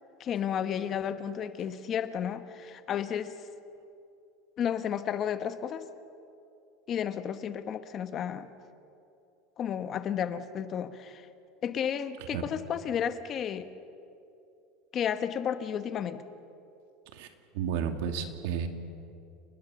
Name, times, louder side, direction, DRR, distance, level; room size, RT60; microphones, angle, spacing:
voice 1, 0.2-3.3 4.6-5.8 6.9-8.5 9.6-11.3 11.6-13.7 14.9-16.2, left 8 dB, 35° left, 11 dB, 1.1 m, -32 dB
voice 2, 17.1-18.7, right 7 dB, 75° right, 6 dB, 2.3 m, -32 dB
30.0 x 19.0 x 6.9 m, 2.6 s
supercardioid pair, 150°, 0 cm